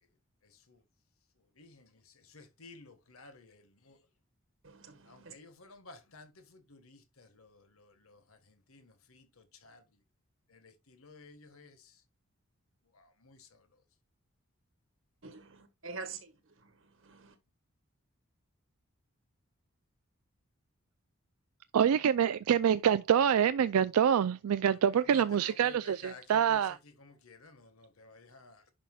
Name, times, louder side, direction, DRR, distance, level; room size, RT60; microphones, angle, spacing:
voice 1, 2.3-3.9 5.1-8.2 8.7-9.2 9.6-9.8 10.6-11.7 13.2-13.5 25.1-25.2 25.6-25.7 26.0-26.2 27.0-28.6, left 3 dB, 80° left, 1.5 m, -54 dB
voice 2, 4.6-5.3 15.2-16.3 17.1-17.3, right 4 dB, 65° right, 1.4 m, -45 dB
voice 3, 21.7-26.8, right 8 dB, 90° right, 0.4 m, -26 dB
10.5 x 5.7 x 2.3 m
head